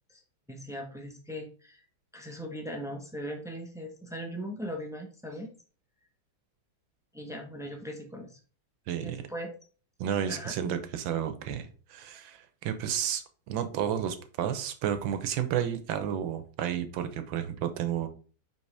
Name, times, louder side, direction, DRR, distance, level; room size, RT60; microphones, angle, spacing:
voice 1, 0.5-1.8 2.1-5.5 7.1-8.4 9.0-9.5 10.3-10.5, equal, 5° right, 0.5 m, -39 dB
voice 2, 8.9-9.2 10.0-18.1, right 9 dB, 80° right, 1.5 m, -31 dB
5.5 x 5.4 x 3.3 m
omnidirectional pair, 2.1 m